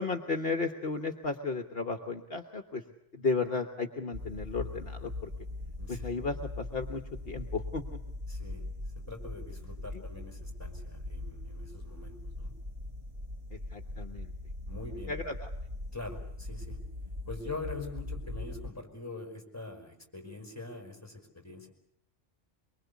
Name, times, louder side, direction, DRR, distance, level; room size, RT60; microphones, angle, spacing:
voice 1, 0.0-2.8 3.1-5.3 5.9-7.8 13.7-14.3 15.1-15.5, left 4 dB, 55° left, 7 dB, 1.4 m, -34 dB
sound 1, 4.1-18.7, left 2 dB, 25° right, 1.5 m, -41 dB
voice 2, 5.8-6.1 8.3-8.7 8.9-12.5 14.7-15.2 15.9-16.8 17.3-21.7, left 3 dB, 15° left, 3 dB, 4.9 m, -43 dB
24.0 x 24.0 x 8.2 m, 0.68 s
omnidirectional pair, 1.2 m